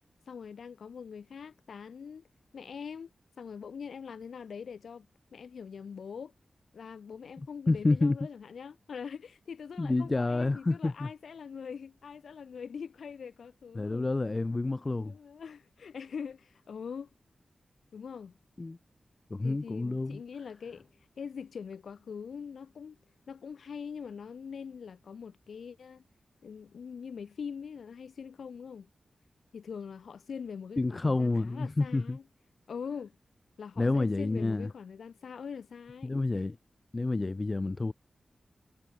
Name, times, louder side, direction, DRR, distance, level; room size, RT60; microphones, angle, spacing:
voice 1, 0.3-2.3 2.5-3.1 3.4-5.1 5.3-6.3 6.7-14.1 15.0-17.1 17.9-18.3 19.4-20.9 21.2-23.0 23.3-26.0 26.4-28.9 29.5-32.2 32.7-33.2 33.6-36.4, left 6 dB, 90° left, 6.1 m, -43 dB
voice 2, 7.7-8.2 9.8-11.1 13.7-15.1 18.6-18.8 19.3-20.2 30.8-32.2 33.8-34.7 36.0-36.6 36.9-37.9, left 2 dB, 35° left, 4.9 m, -29 dB
cardioid pair, 65°, 0 cm